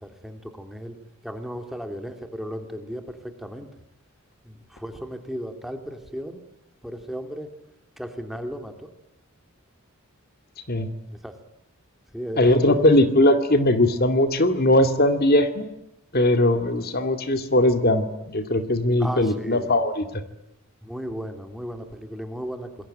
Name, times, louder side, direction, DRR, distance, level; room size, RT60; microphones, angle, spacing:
voice 1, 0.0-0.9 1.2-3.7 4.4-6.4 6.8-7.5 8.0-8.9 11.1-11.3 12.1-13.1 19.0-19.7 20.8-22.7, equal, ahead, 6 dB, 3.0 m, -35 dB
voice 2, 12.4-15.7 16.1-20.2, left 1 dB, 45° left, 8 dB, 2.4 m, -20 dB
28.5 x 21.5 x 9.2 m, 0.83 s
head